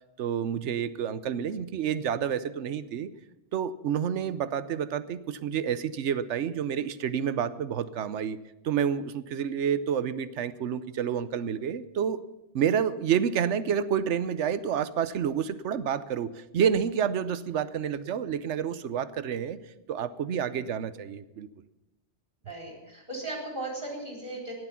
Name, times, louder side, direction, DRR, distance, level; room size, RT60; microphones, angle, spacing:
voice 1, 0.2-3.1 3.5-8.4 8.6-12.2 12.5-19.6 19.9-21.5, right 8 dB, 90° right, 14 dB, 1.0 m, -29 dB
voice 2, 20.2-20.5 22.4-24.5, right 2 dB, 45° right, -2 dB, 4.4 m, -37 dB
15.0 x 11.0 x 5.8 m, 0.97 s
omnidirectional pair, 1.2 m